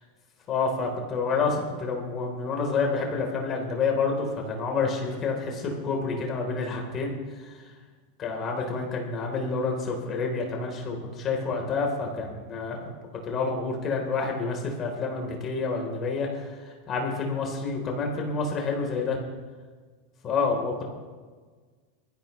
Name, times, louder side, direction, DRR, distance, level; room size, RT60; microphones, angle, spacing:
voice 1, 0.5-7.6 8.2-12.8 13.2-19.2 20.2-20.8, left 4 dB, 35° left, 1 dB, 3.6 m, -28 dB
23.0 x 14.5 x 3.2 m, 1.5 s
hypercardioid pair, 90°, 0 cm